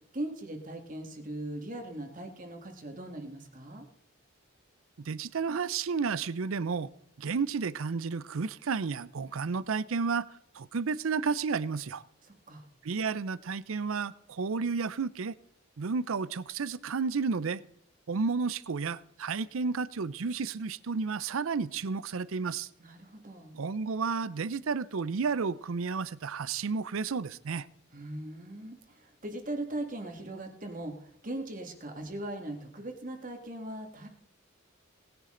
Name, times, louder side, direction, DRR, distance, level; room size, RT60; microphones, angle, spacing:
voice 1, 0.1-3.9 12.2-12.6 22.8-23.6 27.9-34.1, right 1 dB, 40° right, 2.0 m, -39 dB
voice 2, 5.0-6.9 7.2-10.3 10.5-12.0 12.8-15.3 15.8-17.6 18.1-22.7 23.5-27.7, right 5 dB, 75° right, 0.5 m, -32 dB
19.0 x 11.0 x 3.8 m
head